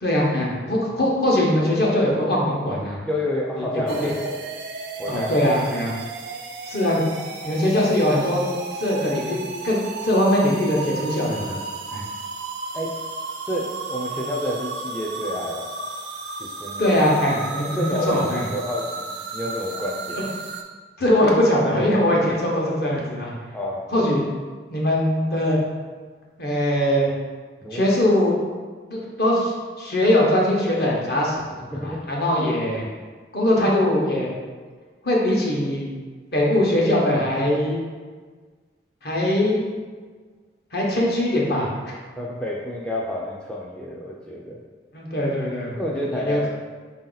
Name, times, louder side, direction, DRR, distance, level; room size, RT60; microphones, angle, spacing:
voice 1, 0.0-3.0 3.6-4.1 5.1-5.9 6.7-7.0 7.4-8.4 8.8-11.6 11.9-12.0 16.8-18.4 21.0-23.3 23.9-24.2 24.7-25.6 26.4-27.1 27.7-28.4 28.9-31.4 31.8-32.8 33.3-34.3 35.0-35.9 36.3-37.8 39.0-39.8 40.7-41.9 44.9-46.5, left 1 dB, 55° left, -3 dB, 1.0 m, -21 dB
voice 2, 3.0-4.4 5.0-5.3 12.7-12.9 13.5-15.7 16.4-16.9 17.8-20.3 23.5-23.8 27.6-27.8 31.7-32.0 32.4-32.5 42.2-44.6 45.8-46.5, equal, 5° left, -4 dB, 0.3 m, -29 dB
sound 1, 3.9-20.6, right 3 dB, 70° right, 0.5 m, -34 dB
4.6 x 2.7 x 3.9 m, 1.5 s
head